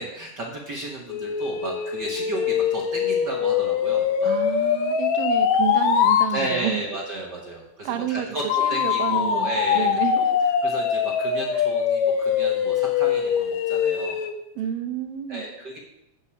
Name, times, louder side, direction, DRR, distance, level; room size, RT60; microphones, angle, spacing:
voice 1, 0.0-4.3 6.3-8.4 8.7-9.9 10.6-14.2 15.3-15.8, right 1 dB, 50° right, -1 dB, 1.3 m, -33 dB
sound 1, 1.1-6.3 8.5-14.3, left 8 dB, 70° left, 2.0 m, -23 dB
voice 2, 4.2-6.8 7.9-8.3 8.6-10.3 11.5-11.6 14.6-15.4, right 9 dB, 90° right, 8 dB, 2.6 m, -30 dB
8.4 x 8.1 x 7.1 m, 0.90 s
omnidirectional pair, 3.9 m